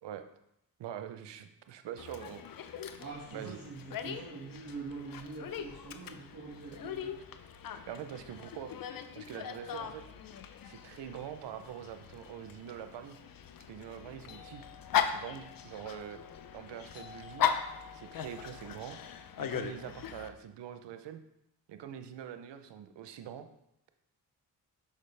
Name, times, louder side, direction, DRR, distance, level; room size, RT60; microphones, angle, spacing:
voice 1, 0.8-2.4 3.3-3.6 7.9-8.7 9.1-10.0 10.6-13.2 13.7-14.6 15.1-16.2 16.5-17.5 17.9-19.0 19.4-21.2 21.7-23.5, right 9 dB, 70° right, 9 dB, 0.7 m, -44 dB
Dog, 2.0-20.3, left 8 dB, 50° left, 0.6 m, -39 dB
voice 2, 3.0-7.2, right 4 dB, 40° right, -5 dB, 1.7 m, -44 dB
6.6 x 5.3 x 3.3 m, 0.81 s
supercardioid pair, 45°, 44 cm